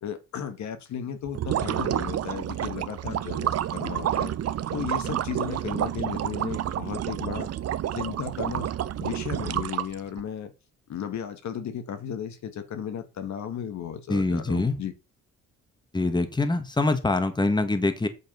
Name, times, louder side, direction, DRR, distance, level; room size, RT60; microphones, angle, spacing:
voice 1, 0.0-4.3 4.7-7.5 7.9-8.7 9.0-10.5 10.9-14.9, left 8 dB, 65° left, 1.6 m, -35 dB
sound 1, 1.3-10.2, right 11 dB, 55° right, 0.7 m, -29 dB
voice 2, 14.1-14.7 15.9-18.1, left 2 dB, 15° left, 1.5 m, -24 dB
8.4 x 4.8 x 5.5 m
cardioid pair, 90°, 30 cm